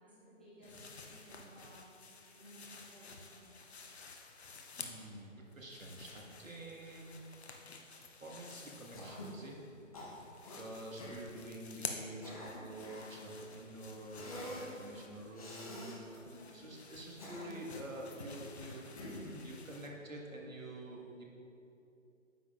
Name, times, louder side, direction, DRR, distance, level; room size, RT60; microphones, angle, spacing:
voice 1, 0.0-1.9 2.3-3.9 9.7-9.9 16.2-16.6, right 1 dB, 10° left, -12 dB, 0.6 m, -58 dB
sound 1, 0.6-5.2 5.5-9.7 10.0-19.9, left 4 dB, 55° left, 0.8 m, -51 dB
voice 2, 4.7-7.2 8.2-9.6 10.6-21.2, right 1 dB, 90° right, -1 dB, 1.6 m, -48 dB
Cough, 8.9-9.4 9.9-10.6 11.0-11.2 11.9-13.1 14.1-14.7 15.3-16.0 16.9-17.8 19.0-19.4, left 1 dB, 30° left, 1.0 m, -47 dB
9.5 x 7.4 x 2.4 m, 2.8 s
figure-of-eight pair, 155°, 39 cm